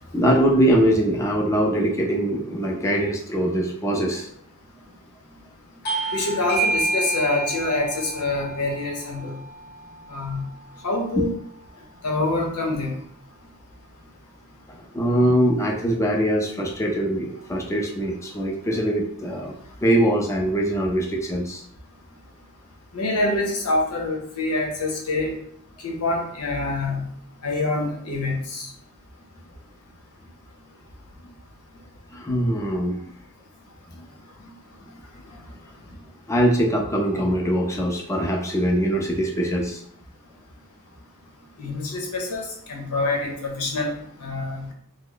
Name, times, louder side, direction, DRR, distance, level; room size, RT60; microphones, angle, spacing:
voice 1, 0.1-4.3 14.7-19.5 19.8-21.6 32.1-33.0 34.0-34.1 36.3-39.8, right 1 dB, 15° left, 0 dB, 0.4 m, -22 dB
Bell / Doorbell, 5.8-10.9, right 2 dB, 50° left, 0.7 m, -29 dB
voice 2, 6.1-9.4 10.1-10.4 10.8-11.3 12.0-12.9 22.9-25.4 25.8-27.1 27.4-28.7 41.6-43.9 44.2-44.7, left 2 dB, 85° left, 1 dB, 0.8 m, -26 dB
3.0 x 2.0 x 3.8 m, 0.66 s
head